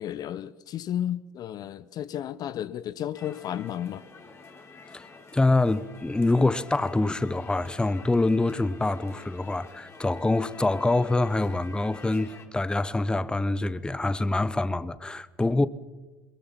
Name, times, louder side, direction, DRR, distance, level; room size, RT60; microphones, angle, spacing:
voice 1, 0.0-4.0, left 10 dB, 45° left, 0.7 m, -33 dB
sound 1, 3.1-12.5, left 4 dB, 25° left, 3.3 m, -47 dB
voice 2, 5.3-15.7, left 2 dB, 10° left, 0.9 m, -25 dB
22.5 x 21.0 x 5.9 m
hypercardioid pair, 75°, 9 cm